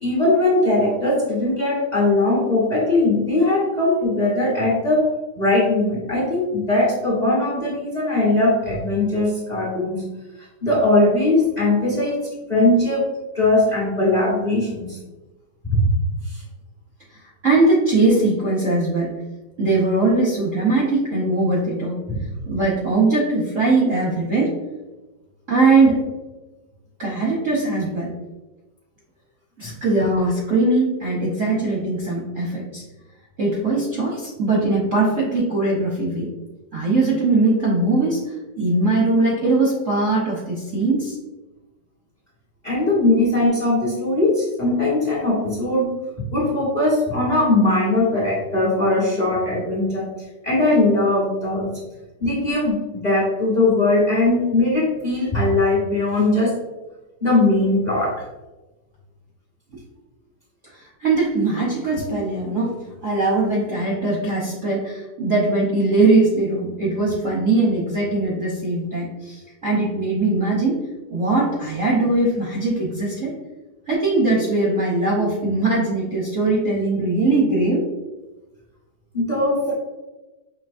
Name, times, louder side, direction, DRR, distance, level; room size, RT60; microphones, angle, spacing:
voice 1, 0.0-5.1 5.3-10.0 10.6-12.2 12.5-13.0 13.3-15.0 15.6-15.8 16.3-16.4 22.1-22.2 29.6-29.7 42.6-45.9 46.3-50.1 50.4-51.7 52.2-56.5 57.2-58.1 79.1-79.7, left 2 dB, 30° left, -5 dB, 0.9 m, -20 dB
voice 2, 17.1-19.1 19.6-22.0 22.5-24.5 25.5-26.1 27.0-28.1 29.6-32.8 33.4-36.3 36.7-41.2 60.7-70.8 71.1-73.3 73.9-77.9 79.6-79.7, right 2 dB, 55° right, -5 dB, 0.9 m, -20 dB
5.7 x 3.0 x 2.5 m, 1.1 s
omnidirectional pair, 2.3 m